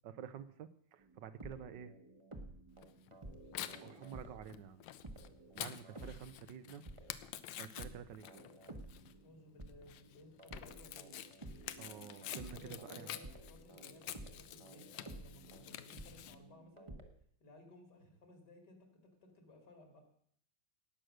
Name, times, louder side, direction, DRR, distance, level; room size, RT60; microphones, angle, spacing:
voice 1, 0.0-1.9 3.8-4.8 5.5-6.8 7.6-8.4 11.8-13.1, right 8 dB, 75° right, 12 dB, 1.4 m, -49 dB
sound 1, 1.0-4.6 5.0-10.0 10.4-17.1, right 2 dB, 20° right, 1.0 m, -53 dB
Tearing, 2.8-16.3, left 12 dB, 85° left, 1.4 m, -49 dB
voice 2, 9.2-11.1 12.5-16.9 17.4-20.0, left 2 dB, 65° left, 4 dB, 3.2 m, -59 dB
18.0 x 6.3 x 6.5 m, 0.65 s
omnidirectional pair, 2.0 m